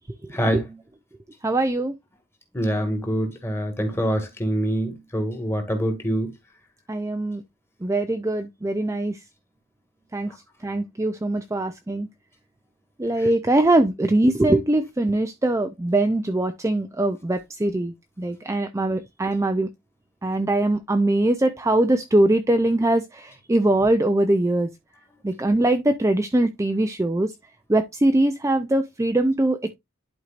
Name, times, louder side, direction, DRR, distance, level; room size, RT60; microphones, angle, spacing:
voice 1, 0.3-0.7 2.5-6.3 13.2-13.3, equal, 10° left, 1.9 m, -25 dB
voice 2, 1.4-1.9 6.9-7.4 7.8-9.2 10.1-10.3 10.6-12.1 13.0-19.7 20.2-24.7 25.2-27.3 27.7-29.7, right 1 dB, 15° right, 0.5 m, -22 dB
11.0 x 4.6 x 2.5 m
head